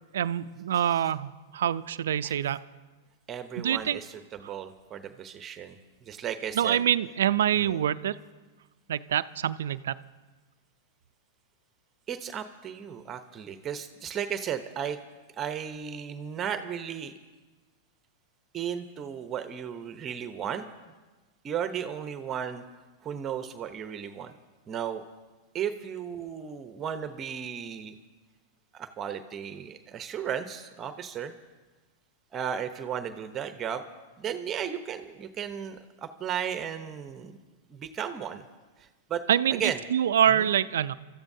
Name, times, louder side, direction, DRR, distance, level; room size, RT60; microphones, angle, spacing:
voice 1, 0.1-2.6 3.6-4.0 6.6-8.2 8.9-9.9 39.3-40.9, right 10 dB, 75° right, 14 dB, 0.4 m, -25 dB
voice 2, 3.3-6.8 7.5-7.7 12.1-15.0 15.4-17.1 18.5-20.6 21.4-22.6 23.0-24.3 24.7-25.0 25.5-28.0 28.7-31.3 32.3-33.8 34.2-37.3 37.7-38.4 38.8-39.2 39.5-39.8 40.3-40.5, right 8 dB, 30° right, 9 dB, 0.9 m, -35 dB
28.5 x 14.0 x 2.7 m, 1.3 s
hypercardioid pair, 110°, 0 cm